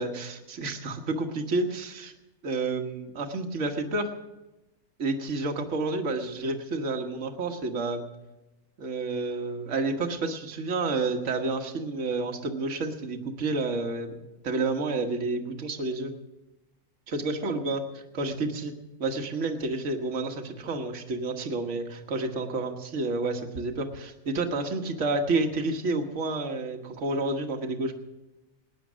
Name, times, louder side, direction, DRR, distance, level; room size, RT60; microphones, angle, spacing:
voice 1, 0.0-2.1 2.4-4.1 5.0-8.0 8.8-16.1 17.1-18.7 19.0-27.9, right 3 dB, 55° right, 5 dB, 1.6 m, -30 dB
19.0 x 9.7 x 6.2 m, 1.0 s
omnidirectional pair, 1.6 m